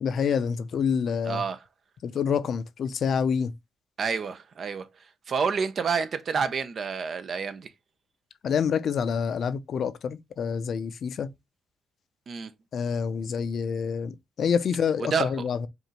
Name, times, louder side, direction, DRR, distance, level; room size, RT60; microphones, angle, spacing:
voice 1, 0.0-1.4 2.0-3.5 8.4-11.3 12.7-15.7, left 6 dB, 60° left, 0.5 m, -27 dB
voice 2, 1.2-1.6 4.0-4.9 5.3-7.7 12.3-12.5 15.0-15.4, right 5 dB, 50° right, 0.6 m, -28 dB
5.0 x 2.6 x 3.1 m
cardioid pair, 90°, 0 cm